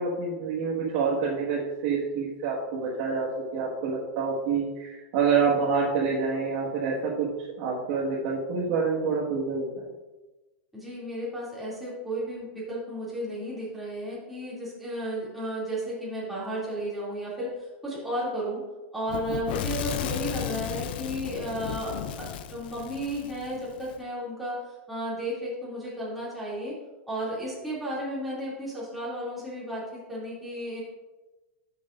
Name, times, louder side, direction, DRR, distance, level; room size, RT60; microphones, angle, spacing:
voice 1, 0.0-7.3 7.6-9.7, right 5 dB, 50° right, -7 dB, 1.7 m, -27 dB
voice 2, 10.7-18.6 18.9-22.2 22.5-24.5 24.9-26.7 27.1-29.8 30.1-30.8, equal, ahead, -9 dB, 2.7 m, -33 dB
Fire / Explosion, 19.1-23.9, left 9 dB, 55° left, 0.5 m, -34 dB
12.5 x 6.9 x 2.6 m, 1.1 s
supercardioid pair, 170°, 6 cm